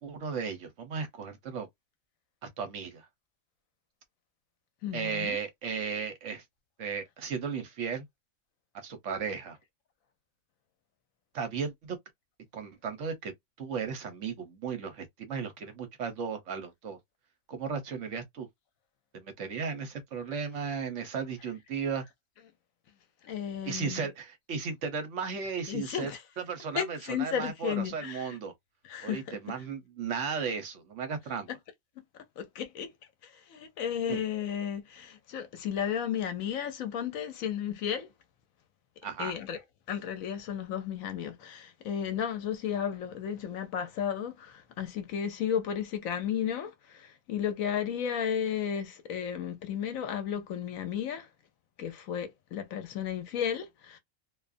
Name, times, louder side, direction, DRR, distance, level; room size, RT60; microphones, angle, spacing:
voice 1, 0.0-1.7 2.4-3.1 4.9-6.4 6.8-8.1 8.7-9.6 11.3-12.0 12.5-17.0 17.5-18.5 19.1-22.0 23.6-26.1 26.4-28.5 29.0-31.5 34.1-34.2 39.0-39.3, right 6 dB, 65° right, 1.0 m, -35 dB
voice 2, 4.8-5.4 23.2-24.1 25.7-26.2 26.7-28.4 28.8-29.4 32.4-32.9 33.2-38.1 39.2-39.6 39.9-51.3 51.8-54.0, left 8 dB, 75° left, 1.1 m, -33 dB
2.6 x 2.3 x 2.4 m
omnidirectional pair, 1.5 m